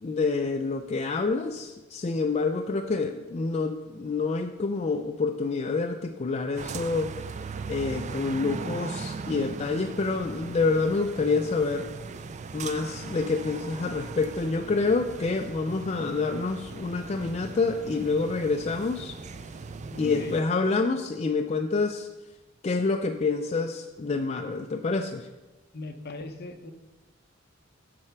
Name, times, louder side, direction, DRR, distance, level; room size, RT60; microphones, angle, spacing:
voice 1, 0.0-7.2 7.7-11.9 12.5-19.2 20.0-22.1 22.6-25.3, left 4 dB, 35° left, 5 dB, 0.4 m, -27 dB
sound 1, 6.6-20.4, right 4 dB, 35° right, 0.4 m, -39 dB
voice 2, 19.9-20.4 25.7-26.7, left 2 dB, 55° left, 7 dB, 0.8 m, -38 dB
7.5 x 6.6 x 5.9 m, 1.1 s
head